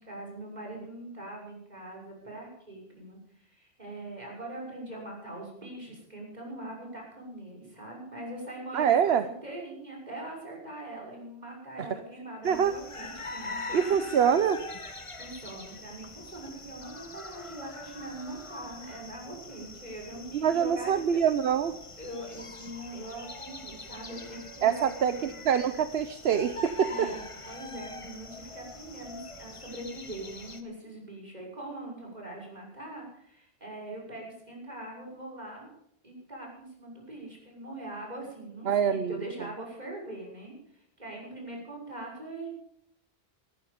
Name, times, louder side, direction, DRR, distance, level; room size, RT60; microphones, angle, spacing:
voice 1, 0.0-14.3 15.2-21.0 22.0-25.3 26.8-35.7 36.0-42.5, right 1 dB, 40° right, -1 dB, 6.5 m, -42 dB
voice 2, 8.7-9.2 11.8-11.9 12.4-12.7 13.7-14.6 20.3-21.8 24.6-27.1 38.7-39.2, right 8 dB, 75° right, 11 dB, 1.0 m, -25 dB
sound 1, 12.4-30.6, left 3 dB, 30° left, 1.3 m, -43 dB
18.0 x 14.5 x 5.2 m, 0.72 s
omnidirectional pair, 1.1 m